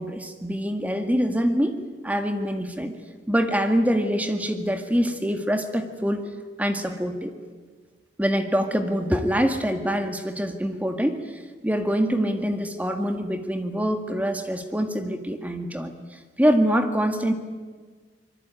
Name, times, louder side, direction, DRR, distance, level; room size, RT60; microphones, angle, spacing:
voice 1, 0.0-1.8 2.0-3.0 3.3-6.2 6.6-7.3 8.2-11.2 11.6-15.9 16.4-17.3, equal, 10° right, 6 dB, 1.9 m, -24 dB
25.5 x 22.5 x 9.0 m, 1.4 s
head